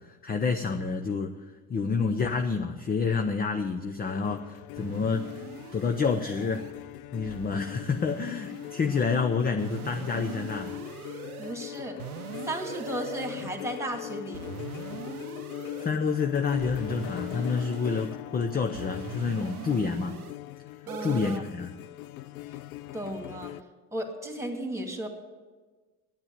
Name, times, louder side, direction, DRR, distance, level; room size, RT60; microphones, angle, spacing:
voice 1, 0.0-1.4 1.7-5.5 5.7-6.7 7.1-10.8 15.8-20.2 21.0-21.8, left 5 dB, 20° left, 6 dB, 0.7 m, -28 dB
sound 1, 4.1-23.6, left 16 dB, 75° left, 0.6 m, -41 dB
sound 2, 4.8-6.7 7.2-9.2 9.6-11.5 12.0-13.6 14.3-15.9 16.5-18.2 18.7-20.3 20.9-21.4, right 8 dB, 85° right, 0.7 m, -42 dB
voice 2, 11.4-12.0 12.4-14.5 20.9-21.4 22.9-23.5 23.9-25.1, right 1 dB, 5° right, 4 dB, 2.3 m, -35 dB
9.8 x 9.0 x 9.2 m, 1.3 s
hypercardioid pair, 70°, 43 cm